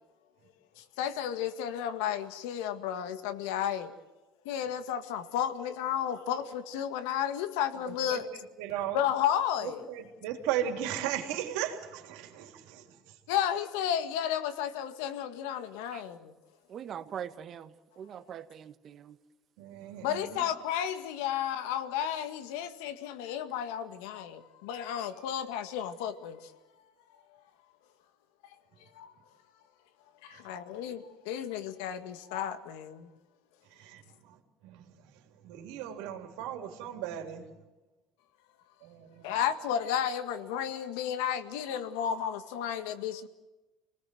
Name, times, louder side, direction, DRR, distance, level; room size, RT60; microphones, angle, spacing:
voice 1, 0.8-3.9 4.4-8.3 8.9-9.9 13.3-16.3 20.0-26.5 27.3-27.4 28.8-29.1 30.2-33.1 39.2-43.3, left 9 dB, 85° left, 1.8 m, -33 dB
voice 2, 7.8-8.2 8.6-9.0 9.6-13.2 19.6-20.4 30.3-30.4 33.7-35.1 35.4-37.5 38.8-39.4, right 10 dB, 85° right, 3.5 m, -37 dB
voice 3, 16.7-19.2, right 9 dB, 50° right, 1.5 m, -42 dB
27.0 x 19.5 x 7.8 m
supercardioid pair, 90°, 0 cm